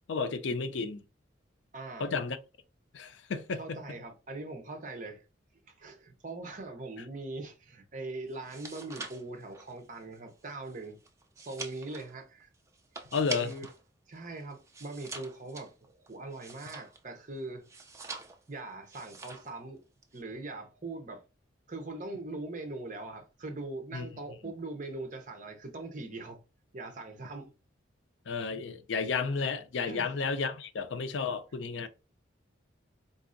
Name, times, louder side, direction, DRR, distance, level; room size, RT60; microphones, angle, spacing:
voice 1, 0.1-1.0 2.0-2.4 2.9-3.8 13.1-13.5 23.9-24.1 28.3-31.9, left 5 dB, 75° left, 0.4 m, -32 dB
voice 2, 1.7-2.1 3.6-5.2 5.7-11.0 11.4-12.5 13.4-13.6 14.1-17.6 18.5-19.8 20.1-21.2 21.7-26.4 26.7-27.5 29.9-30.1, right 2 dB, 40° right, 0.7 m, -41 dB
sound 1, 8.3-13.8 14.1-17.2 17.6-18.5 18.9-19.6 19.8-20.2, right 4 dB, 15° right, 0.3 m, -45 dB
4.0 x 2.6 x 2.5 m
head